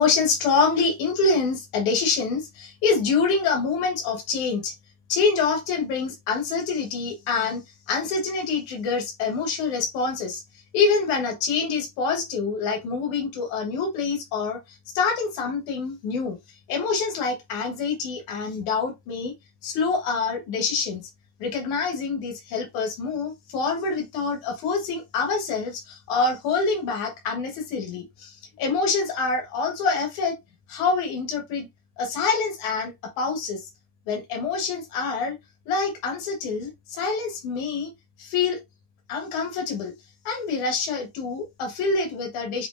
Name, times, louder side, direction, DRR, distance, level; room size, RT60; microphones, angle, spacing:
voice 1, 0.0-4.7 5.1-10.4 10.7-14.6 14.9-16.4 16.7-19.3 19.6-21.1 21.4-30.4 30.7-31.7 32.0-33.7 34.1-35.4 35.7-37.9 38.2-38.6 39.1-39.9 40.3-42.7, left 4 dB, 85° left, 2.7 m, -26 dB
7.7 x 2.7 x 2.5 m
omnidirectional pair, 3.3 m